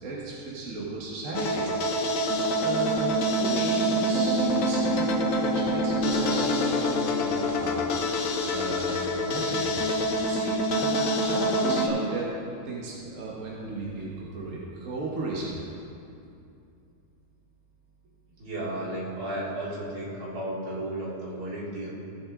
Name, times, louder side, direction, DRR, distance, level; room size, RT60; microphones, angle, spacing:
voice 1, 0.0-1.7 2.6-9.7 10.3-12.3 12.6-15.8, right 2 dB, 60° right, -4 dB, 1.6 m, -35 dB
sound 1, 1.3-11.9, equal, 65° left, 1.1 m, -26 dB
voice 2, 18.4-21.9, right 1 dB, 85° right, -7 dB, 2.9 m, -33 dB
16.5 x 6.1 x 3.7 m, 2.6 s
omnidirectional pair, 1.6 m